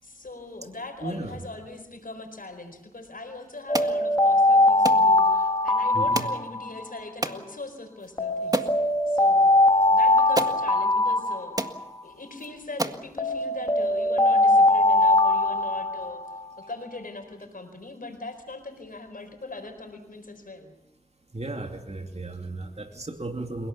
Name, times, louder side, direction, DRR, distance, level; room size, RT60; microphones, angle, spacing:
voice 1, 0.0-11.6 12.0-16.4 16.7-20.7, left 2 dB, 80° left, 5 dB, 4.5 m, -41 dB
voice 2, 1.0-1.4 5.9-6.3 9.4-9.5 11.8-11.9 21.3-23.7, right 2 dB, 50° right, 4 dB, 2.5 m, -35 dB
Alarm, 3.7-7.0 8.2-12.0 13.2-16.4, left 2 dB, 30° left, 2.6 m, -21 dB
sound 1, 3.7-4.0 4.8-5.0 6.1-6.4 7.2-7.4 8.0-8.1 8.5-8.8 9.8-9.9 10.3-10.6 11.2-11.3 11.6-11.8 12.4-12.5 12.8-13.1, right 1 dB, 25° right, 1.8 m, -28 dB
30.0 x 17.5 x 7.2 m, 0.85 s
wide cardioid pair, 45°, 14 cm